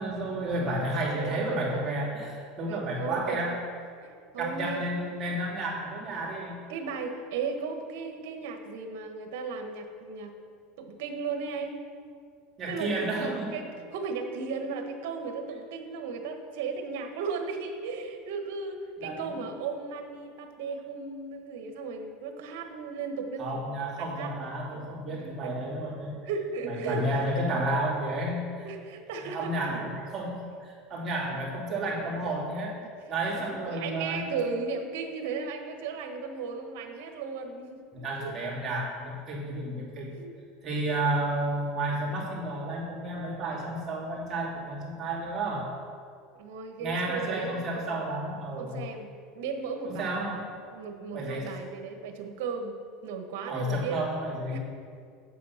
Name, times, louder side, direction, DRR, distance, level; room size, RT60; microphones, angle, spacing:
voice 1, 0.0-3.6 4.4-6.6 12.6-13.6 19.0-19.4 23.4-26.3 26.6-28.7 29.2-32.8 33.1-34.3 37.9-40.2 40.6-45.7 46.8-48.8 49.8-50.5 51.1-51.5 53.5-54.6, right 1 dB, 30° right, -5 dB, 2.6 m, -31 dB
voice 2, 1.1-2.0 2.6-3.6 4.0-4.9 6.2-6.3 6.7-10.3 10.8-11.8 12.7-24.3 24.7-25.6 26.3-27.5 28.6-30.0 32.8-32.9 33.3-38.3 40.2-40.3 40.9-41.0 46.4-48.0 48.6-49.1 49.3-50.2 50.7-52.7 53.0-54.0 54.5-54.6, right 4 dB, 75° right, 5 dB, 1.3 m, -36 dB
8.4 x 8.0 x 5.8 m, 2.2 s
supercardioid pair, 135°, 0 cm